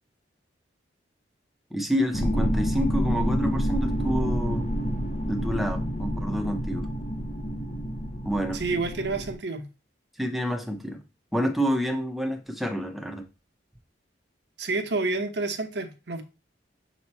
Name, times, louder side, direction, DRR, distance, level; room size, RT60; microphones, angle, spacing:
voice 1, 1.7-4.7 5.3-6.9 8.2-8.6 10.2-11.0 11.3-13.3, equal, ahead, 0.7 m, -28 dB
sound 1, 2.1-9.3, equal, 35° left, 0.7 m, -28 dB
voice 2, 8.5-9.7 14.6-16.2, right 3 dB, 60° right, 0.9 m, -29 dB
7.0 x 3.0 x 4.4 m
head